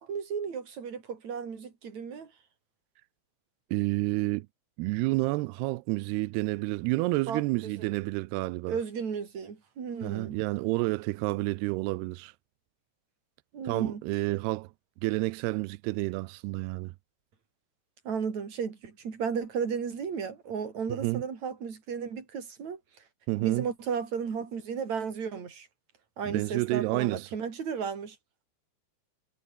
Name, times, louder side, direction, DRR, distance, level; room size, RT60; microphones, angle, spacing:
voice 1, 0.0-2.3 7.3-7.7 8.7-10.4 13.5-14.0 18.0-22.8 23.4-25.7 26.2-28.2, right 6 dB, 40° right, 4.5 m, -34 dB
voice 2, 3.7-4.5 4.8-8.8 10.0-12.3 13.6-14.7 15.0-16.9 20.9-21.3 23.3-23.7 26.2-27.3, right 22 dB, 85° right, 2.3 m, -29 dB
omnidirectional pair, 5.3 m